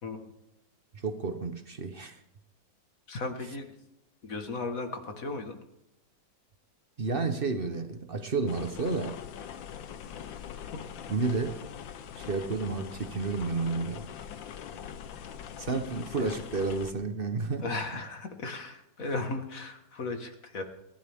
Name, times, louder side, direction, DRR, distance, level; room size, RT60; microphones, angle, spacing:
voice 1, 0.0-0.3 3.1-3.7 4.2-5.6 16.2-16.3 17.6-20.6, left 3 dB, 50° left, 6 dB, 2.0 m, -36 dB
voice 2, 0.9-2.2 7.0-9.2 11.1-11.6 12.2-14.0 15.6-17.6, right 4 dB, 40° right, 9 dB, 0.9 m, -31 dB
sound 1, 8.5-16.9, left 8 dB, 85° left, 1.7 m, -42 dB
29.5 x 12.0 x 3.6 m, 0.88 s
omnidirectional pair, 2.0 m